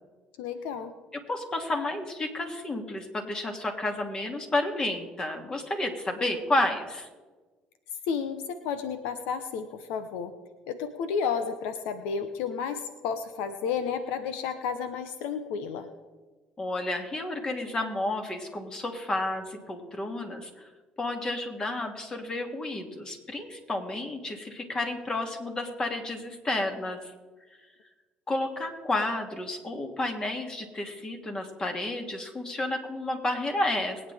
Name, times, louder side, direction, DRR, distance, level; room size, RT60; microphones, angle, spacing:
voice 1, 0.4-0.9 8.1-10.3 10.7-15.9, left 6 dB, 85° left, 9 dB, 0.9 m, -32 dB
voice 2, 1.1-7.1 16.6-20.5 21.0-27.0 28.3-34.1, left 2 dB, 30° left, 3 dB, 2.6 m, -31 dB
22.0 x 9.5 x 3.5 m, 1.3 s
supercardioid pair, 80°, 3 cm